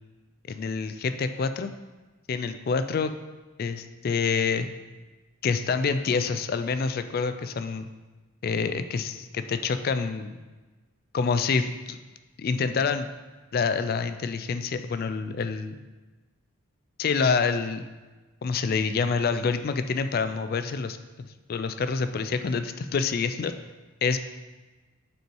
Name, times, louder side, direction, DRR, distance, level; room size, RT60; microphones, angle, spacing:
voice 1, 0.5-1.7 2.3-3.1 3.6-4.7 5.4-7.9 8.4-10.3 11.1-12.0 12.4-13.1 13.5-15.8 17.0-17.8 18.4-23.5 24.0-24.2, left 5 dB, 45° left, 10 dB, 0.3 m, -27 dB
5.4 x 4.5 x 4.5 m, 1.2 s
head